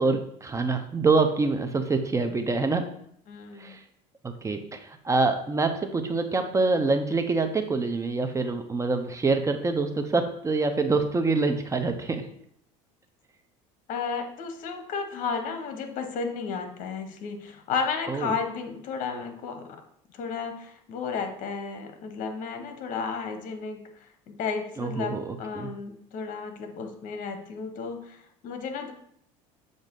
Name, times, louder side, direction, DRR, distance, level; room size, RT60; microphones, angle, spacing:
voice 1, 0.0-2.9 3.6-3.8 4.2-12.3 18.1-18.3 24.8-25.7, right 3 dB, 20° right, 7 dB, 0.7 m, -26 dB
voice 2, 3.3-3.8 13.9-19.8 20.1-28.9, left 5 dB, 60° left, 6 dB, 1.1 m, -33 dB
7.3 x 2.6 x 5.2 m, 0.69 s
supercardioid pair, 100°, 15 cm